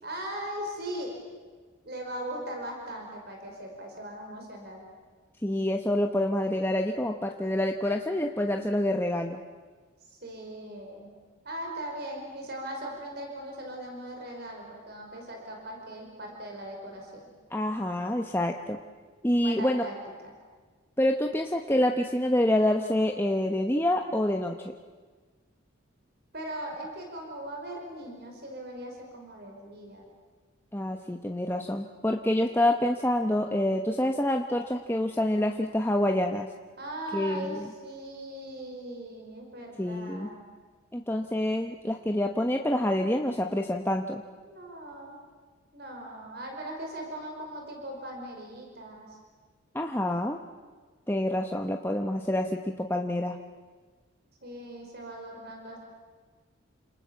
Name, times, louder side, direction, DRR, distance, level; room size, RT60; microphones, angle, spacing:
voice 1, 0.0-1.1 1.8-4.8 10.1-11.1 11.4-17.3 19.4-20.0 20.2-20.3 26.3-30.1 36.8-40.5 44.5-45.2 45.7-49.2 54.4-55.8, right 1 dB, 50° right, 1 dB, 5.3 m, -39 dB
voice 2, 5.4-9.4 17.5-18.8 19.2-19.8 21.0-24.7 30.7-36.5 37.1-37.7 39.8-40.3 40.9-44.2 49.7-50.4 51.1-53.3, left 1 dB, 10° left, 3 dB, 1.0 m, -27 dB
29.5 x 27.0 x 7.2 m, 1.4 s
head